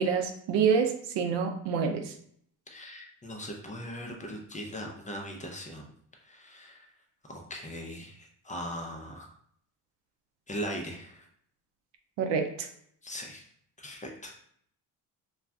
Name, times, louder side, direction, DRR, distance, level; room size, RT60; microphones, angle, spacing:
voice 1, 0.0-2.1 12.2-12.7, right 6 dB, 75° right, 5 dB, 0.6 m, -27 dB
voice 2, 2.7-5.8 6.3-6.9 7.3-9.3 10.5-11.2 13.0-13.4 13.8-14.4, equal, 20° left, 1 dB, 0.5 m, -39 dB
2.4 x 2.2 x 3.3 m, 0.65 s
supercardioid pair, 75°, 42 cm